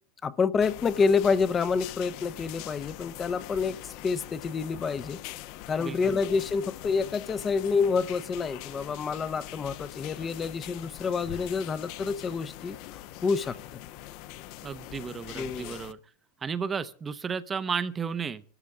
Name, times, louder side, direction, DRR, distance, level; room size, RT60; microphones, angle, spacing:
voice 1, 0.2-5.2 5.7-13.6 15.3-15.8, left 5 dB, 20° left, 0.7 m, -28 dB
sound 1, 0.6-15.9, left 14 dB, 50° left, 0.8 m, -43 dB
voice 2, 5.8-6.2 14.6-16.0 16.4-18.4, right 6 dB, 20° right, 0.7 m, -33 dB
25.0 x 13.0 x 3.6 m
supercardioid pair, 150°, 0 cm